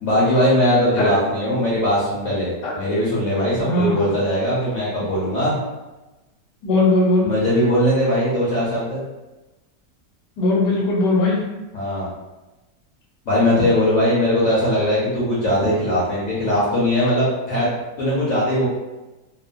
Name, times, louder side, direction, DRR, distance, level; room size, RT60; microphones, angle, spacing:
voice 1, 0.0-5.6 7.2-9.0 11.7-12.1 13.3-17.7 18.0-18.7, left 1 dB, 60° left, -8 dB, 0.9 m, -20 dB
voice 2, 3.6-4.0 6.6-7.2 10.4-11.4, left 2 dB, 75° left, -4 dB, 1.4 m, -18 dB
3.0 x 2.1 x 2.5 m, 1.1 s
omnidirectional pair, 1.9 m